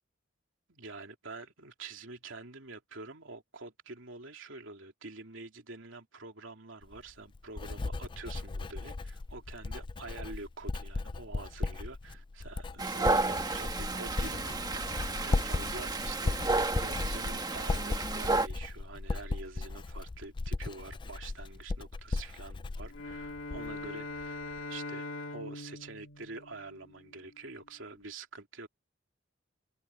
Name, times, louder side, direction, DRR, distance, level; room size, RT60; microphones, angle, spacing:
voice 1, 0.7-24.4 24.7-28.7, right 3 dB, 75° right, 3.1 m, -47 dB
Writing, 6.8-23.9 24.2-24.6, left 3 dB, 25° left, 0.3 m, -36 dB
Dog, 12.8-18.5, right 3 dB, 20° right, 1.4 m, -32 dB
Bowed string instrument, 22.9-27.3, left 2 dB, 85° left, 2.4 m, -42 dB
head